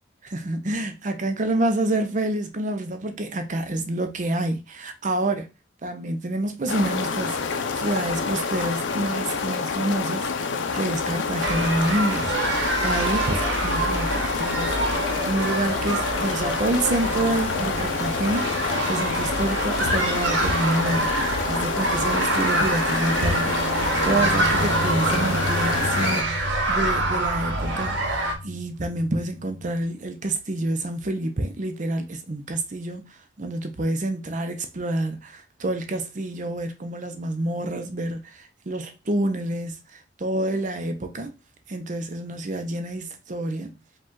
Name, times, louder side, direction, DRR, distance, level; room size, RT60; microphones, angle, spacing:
voice 1, 0.2-5.5 5.8-14.8 15.3-41.3 41.7-43.7, right 1 dB, 40° right, 0.6 m, -28 dB
sound 1, 6.7-26.2, left 5 dB, 85° left, 0.6 m, -28 dB
sound 2, 11.4-28.3, right 2 dB, 80° right, 1.2 m, -26 dB
sound 3, 16.2-21.6 21.9-22.0 23.2-29.7, equal, 65° left, 2.1 m, -35 dB
5.1 x 2.4 x 3.7 m
head